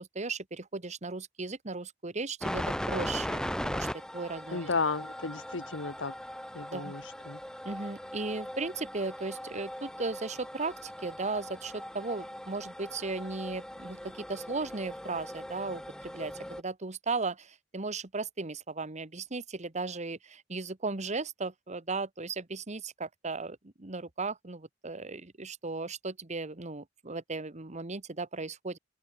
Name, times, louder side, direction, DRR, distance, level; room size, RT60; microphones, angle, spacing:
voice 1, 0.0-3.9 4.1-4.7 6.7-6.9 7.6-28.8, right 3 dB, 40° right, 1.4 m, -36 dB
sound 1, 2.4-16.6, equal, 5° left, 3.8 m, -39 dB
voice 2, 4.5-6.1 6.5-7.4, left 4 dB, 75° left, 1.3 m, -33 dB
open air
head